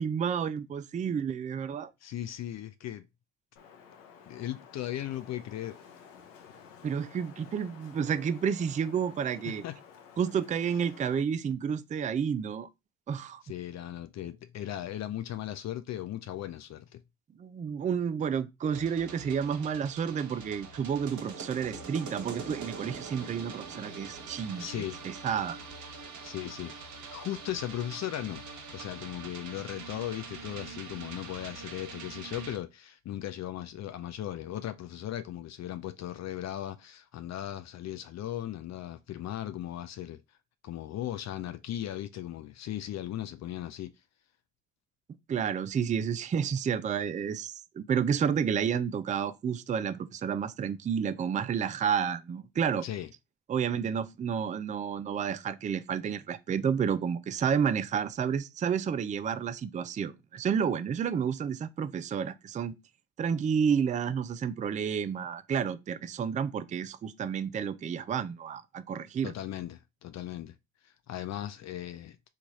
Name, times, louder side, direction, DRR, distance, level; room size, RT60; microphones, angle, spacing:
voice 1, 0.0-1.9 6.8-9.6 10.2-12.7 13.1-13.4 17.4-25.6 45.3-52.8 53.5-62.8 63.2-69.3, right 7 dB, 20° right, 0.4 m, -30 dB
voice 2, 2.0-3.0 4.3-5.8 9.5-9.8 13.4-17.0 24.6-25.0 26.2-26.8 27.0-28.4 28.7-40.2 40.6-43.9 52.8-53.1 69.2-70.6 70.8-72.3, left 12 dB, 45° left, 0.5 m, -37 dB
Wind, 3.6-11.2, left 7 dB, 85° left, 0.7 m, -53 dB
sound 1, 18.7-32.6, right 4 dB, 50° right, 1.0 m, -44 dB
3.1 x 2.4 x 4.1 m
hypercardioid pair, 50°, 37 cm